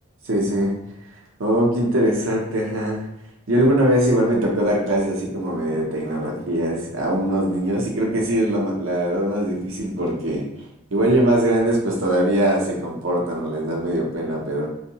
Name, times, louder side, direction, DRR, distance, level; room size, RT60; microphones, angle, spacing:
voice 1, 0.2-0.7 1.4-3.1 3.5-10.4 10.9-14.7, right 1 dB, 90° right, -1 dB, 0.7 m, -21 dB
2.6 x 2.3 x 2.8 m, 0.86 s
head